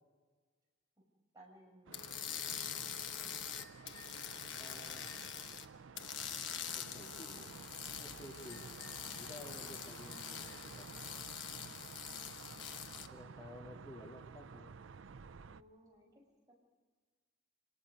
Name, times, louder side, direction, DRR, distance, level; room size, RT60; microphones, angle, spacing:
voice 1, 1.3-2.0 3.2-3.6 6.9-7.6 8.6-8.9 9.1-9.2 12.2-12.4 12.9-13.1 15.4-16.1 16.5-16.6, right 1 dB, 20° right, -2 dB, 6.9 m, -62 dB
sound 1, 1.9-5.7 6.0-13.1, left 9 dB, 70° left, 1.2 m, -44 dB
sound 2, 1.9-15.6, right 5 dB, 90° right, 0.5 m, -53 dB
sound 3, 3.6-4.2 5.1-5.4 6.3-7.0 8.5-9.2 10.1-10.8, left 4 dB, 90° left, 4.5 m, -58 dB
voice 2, 4.5-5.1 6.7-7.4 8.0-8.7 9.1-10.9 13.1-14.7, left 1 dB, 25° left, -1 dB, 2.0 m, -53 dB
28.0 x 19.0 x 5.4 m, 1.5 s
head